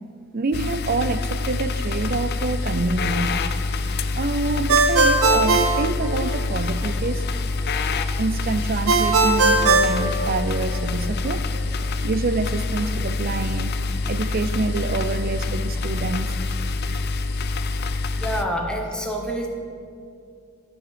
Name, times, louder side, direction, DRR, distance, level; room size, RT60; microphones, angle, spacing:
voice 1, 0.3-3.5 4.0-7.3 8.2-11.5 12.0-13.7 14.0-16.4, right 3 dB, 45° right, 12 dB, 0.5 m, -27 dB
sound 1, 0.5-18.5, left 3 dB, 50° left, 0.5 m, -26 dB
Ringtone, 4.7-6.6 8.9-10.8, right 3 dB, 85° right, 0.8 m, -19 dB
voice 2, 18.2-19.5, equal, 5° left, 1 dB, 1.1 m, -27 dB
13.5 x 6.2 x 5.1 m, 2.4 s
head